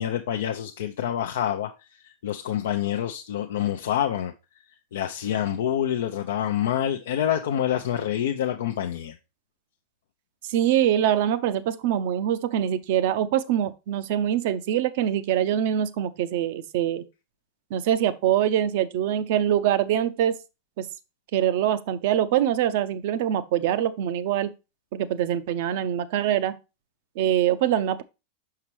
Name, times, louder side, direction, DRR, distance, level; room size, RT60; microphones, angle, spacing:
voice 1, 0.0-4.3 4.9-9.2, left 10 dB, 70° left, 0.5 m, -27 dB
voice 2, 10.5-17.0 17.7-20.4 20.8-20.9 21.3-24.5 24.9-26.5 27.2-28.0, right 10 dB, 60° right, 0.5 m, -24 dB
5.9 x 5.7 x 3.0 m
hypercardioid pair, 95°, 0 cm